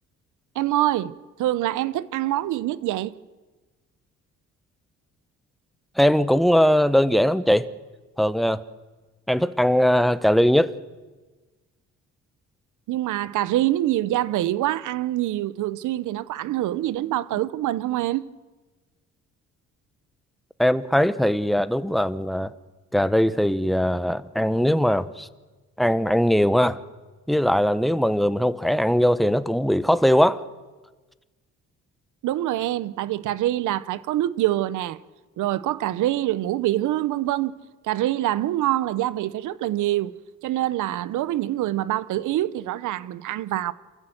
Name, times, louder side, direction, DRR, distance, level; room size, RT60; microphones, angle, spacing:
voice 1, 0.5-3.1 12.9-18.2 32.2-35.0 35.4-37.5 37.8-40.1 40.4-43.7, right 14 dB, 85° right, 0.8 m, -25 dB
voice 2, 6.0-7.7 8.2-8.6 9.3-10.7 20.6-22.5 22.9-25.3 25.8-26.8 27.3-30.4, equal, ahead, 0.9 m, -20 dB
27.5 x 14.5 x 7.9 m
cardioid pair, 90°, 30 cm